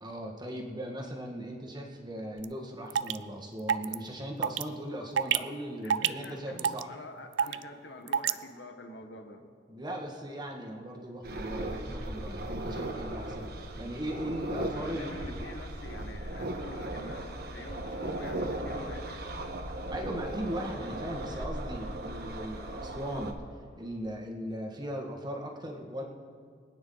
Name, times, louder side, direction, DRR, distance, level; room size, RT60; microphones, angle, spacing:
voice 1, 0.0-7.0 9.7-13.5 13.7-15.4 19.9-23.4 23.8-26.0, equal, 25° right, 0 dB, 1.8 m, -38 dB
sound 1, 2.4-2.5 2.9-3.2 3.7-4.0 4.4-4.6 5.2-5.4 5.9-6.3 6.6-6.8 7.4-7.6 8.1-8.3, right 8 dB, 80° right, 0.4 m, -26 dB
voice 2, 5.8-9.5 14.2-14.3 14.6-19.4, left 2 dB, 75° left, 5 dB, 1.3 m, -47 dB
sound 2, 11.2-23.3, right 1 dB, 60° right, 1.3 m, -37 dB
24.0 x 9.5 x 4.0 m, 2.2 s
head